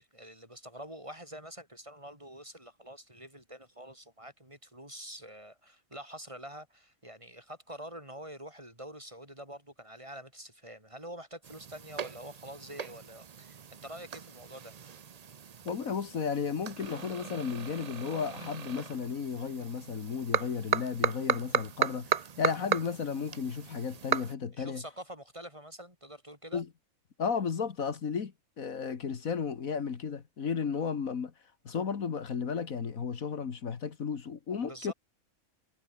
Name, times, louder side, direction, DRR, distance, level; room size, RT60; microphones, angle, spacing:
voice 1, 0.0-13.6 13.8-14.8 20.9-21.0 24.5-26.6 34.6-34.9, right 1 dB, 20° right, 7.1 m, -46 dB
sound 1, 11.4-24.3, right 7 dB, 45° right, 0.5 m, -36 dB
voice 2, 15.7-24.8 26.5-26.7 27.2-31.3 31.7-34.9, left 6 dB, 75° left, 2.0 m, -34 dB
omnidirectional pair, 1.5 m